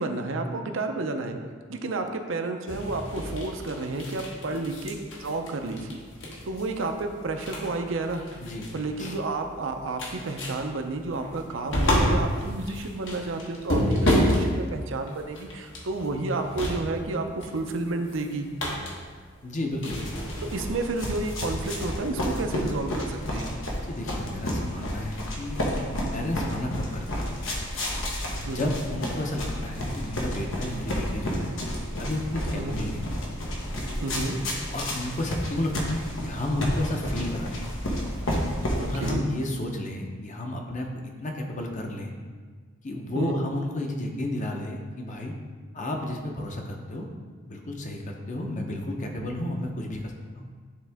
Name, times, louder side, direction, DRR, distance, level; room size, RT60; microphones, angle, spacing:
voice 1, 0.0-1.4 1.7-6.0 6.4-8.2 8.7-18.5 20.4-23.5 28.3-28.7 32.5-32.8 34.0-34.4 38.8-39.2 43.1-43.3, right 3 dB, 70° right, 5 dB, 0.6 m, -31 dB
sound 1, 2.7-20.6, equal, 70° left, 1.2 m, -31 dB
voice 2, 19.4-20.0 23.9-27.1 28.4-31.5 32.0-33.2 34.7-37.5 38.8-40.9 41.2-42.1 42.8-45.3 45.7-47.0 47.5-50.5, left 1 dB, 40° left, 2 dB, 0.8 m, -32 dB
sound 2, 19.9-39.1, equal, 90° left, 1.2 m, -31 dB
9.5 x 3.6 x 3.5 m, 1.5 s
head